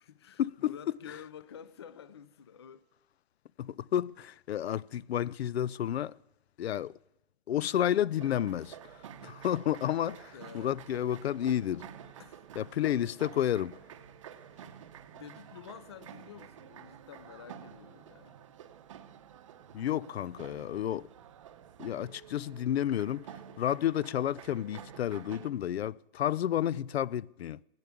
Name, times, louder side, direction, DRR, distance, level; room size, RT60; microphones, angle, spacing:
voice 1, 0.0-2.9 10.3-10.8 12.2-12.4 15.1-18.4, left 8 dB, 25° left, 0.5 m, -49 dB
voice 2, 3.6-6.1 6.6-6.9 7.5-8.9 9.2-11.9 12.6-13.8 19.7-21.1 21.8-23.3 23.6-27.6, left 11 dB, 85° left, 0.5 m, -31 dB
sound 1, 8.1-25.5, right 9 dB, 30° right, 0.8 m, -50 dB
15.5 x 10.5 x 8.4 m
hypercardioid pair, 170°, 31 cm